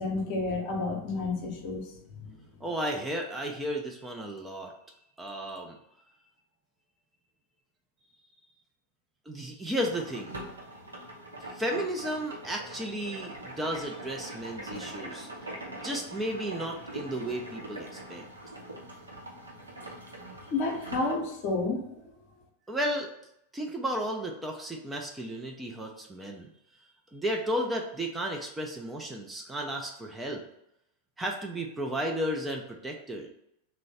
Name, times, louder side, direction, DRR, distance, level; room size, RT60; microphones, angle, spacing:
voice 1, 0.0-1.8 2.3-2.4 20.5-21.9, left 3 dB, 45° left, 2 dB, 0.7 m, -30 dB
voice 2, 2.6-4.7 5.2-5.8 9.3-10.3 11.5-15.3 15.8-18.2 22.7-23.1 23.5-26.5 27.1-30.4 31.2-33.3, equal, 10° right, 1 dB, 0.4 m, -33 dB
sound 1, 9.8-21.1, right 1 dB, 80° right, 0.7 m, -42 dB
3.0 x 2.1 x 4.0 m, 0.80 s
figure-of-eight pair, 90°, 0 cm